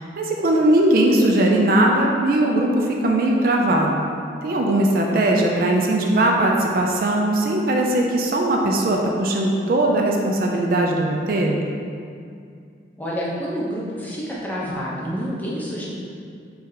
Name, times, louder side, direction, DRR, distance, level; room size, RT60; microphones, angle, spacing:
voice 1, 0.0-4.0 4.4-11.6, right 1 dB, 50° right, 0 dB, 0.4 m, -19 dB
voice 2, 13.0-15.9, equal, 10° left, -6 dB, 0.6 m, -28 dB
4.1 x 3.3 x 3.8 m, 2.3 s
head